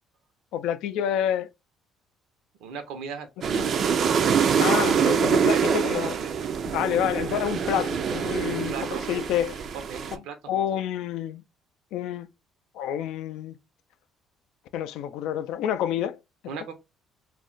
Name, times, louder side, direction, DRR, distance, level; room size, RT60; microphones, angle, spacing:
voice 1, 0.5-1.5 3.6-3.7 4.6-6.2 6.7-8.7 9.1-9.5 10.5-11.4 11.9-12.3 12.7-13.6 14.7-16.2, left 10 dB, 80° left, 0.3 m, -28 dB
voice 2, 2.6-4.8 5.3-5.6 6.0-6.3 6.9-7.0 8.5-9.3 9.9-10.8 16.5-16.7, right 6 dB, 85° right, 0.7 m, -39 dB
sound 1, 3.4-10.2, right 6 dB, 55° right, 0.4 m, -25 dB
2.3 x 2.1 x 3.8 m
cardioid pair, 95°, 0 cm